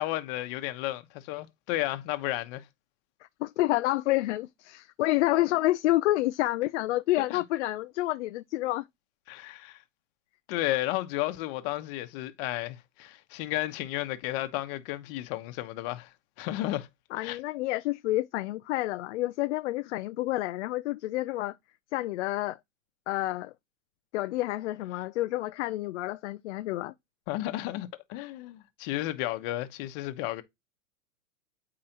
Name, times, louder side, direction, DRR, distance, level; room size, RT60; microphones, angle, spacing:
voice 1, 0.0-2.6 7.2-7.4 9.3-9.8 10.5-16.9 17.2-17.4 27.3-30.4, left 16 dB, 45° left, 1.1 m, -33 dB
voice 2, 3.4-8.8 17.1-21.6 21.9-22.6 23.1-23.5 24.1-26.9, left 17 dB, 60° left, 0.5 m, -29 dB
8.6 x 4.9 x 2.9 m
hypercardioid pair, 115°, 39 cm